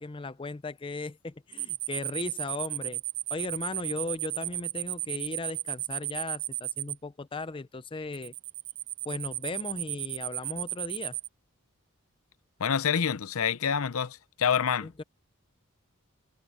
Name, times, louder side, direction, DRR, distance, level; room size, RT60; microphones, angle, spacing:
voice 1, 0.0-3.0 3.3-8.3 9.1-11.2 14.8-15.0, left 3 dB, 25° left, 0.5 m, -37 dB
sound 1, 1.5-6.9 8.1-11.3, right 17 dB, 60° right, 0.6 m, -33 dB
voice 2, 12.6-14.9, left 7 dB, 80° left, 0.6 m, -27 dB
head